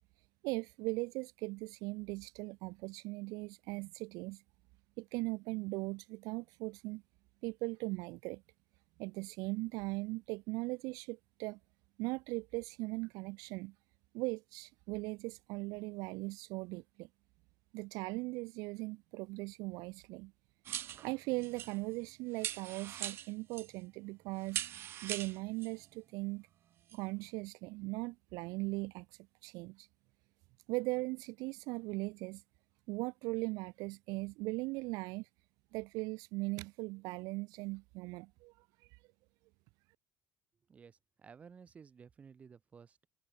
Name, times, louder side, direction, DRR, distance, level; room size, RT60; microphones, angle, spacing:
voice 1, 0.4-4.4 5.0-7.0 7.4-8.4 9.0-11.6 12.0-13.7 14.1-17.1 17.7-20.3 21.0-24.6 25.0-26.5 26.9-29.9 30.7-32.4 32.9-35.3 35.7-39.0, right 25 dB, 65° right, 0.8 m, -39 dB
sound 1, 20.6-22.1 22.4-23.8 24.4-25.8 26.9-27.0, right 11 dB, 35° right, 1.4 m, -41 dB
voice 2, 40.7-43.1, right 6 dB, 20° right, 4.3 m, -56 dB
cardioid pair, 175°, 7 cm